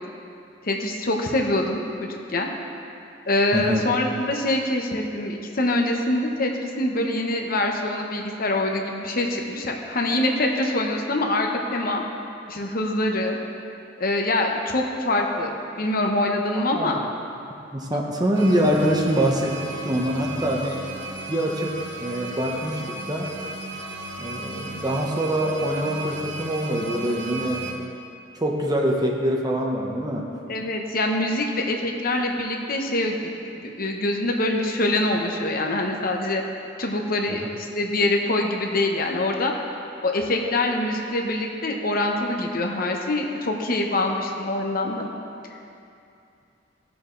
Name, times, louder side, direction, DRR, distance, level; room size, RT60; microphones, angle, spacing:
voice 1, 0.6-2.5 3.2-12.0 12.5-13.4 14.0-17.0 30.5-33.3 33.6-36.4 36.8-39.5 40.0-45.1, left 1 dB, 50° left, 1 dB, 1.0 m, -24 dB
voice 2, 3.5-3.9 16.7-16.9 17.7-20.8 21.3-21.7 22.0-23.3 24.2-27.7 28.3-30.3, right 1 dB, 20° right, 0 dB, 1.0 m, -24 dB
sound 1, 18.3-27.7, right 2 dB, 80° right, 1.1 m, -35 dB
17.0 x 7.0 x 3.9 m, 2.6 s
head